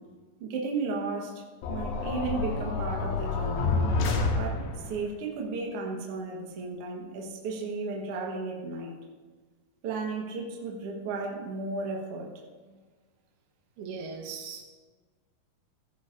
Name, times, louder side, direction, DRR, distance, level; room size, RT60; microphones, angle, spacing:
voice 1, 0.4-3.7 4.4-9.0 9.8-12.3, right 3 dB, 50° right, -1 dB, 1.8 m, -34 dB
sound 1, 1.6-5.0, left 3 dB, 80° left, 3.2 m, -28 dB
voice 2, 13.8-14.6, right 5 dB, 80° right, 3 dB, 3.3 m, -38 dB
14.5 x 14.0 x 2.7 m, 1.4 s
omnidirectional pair, 4.6 m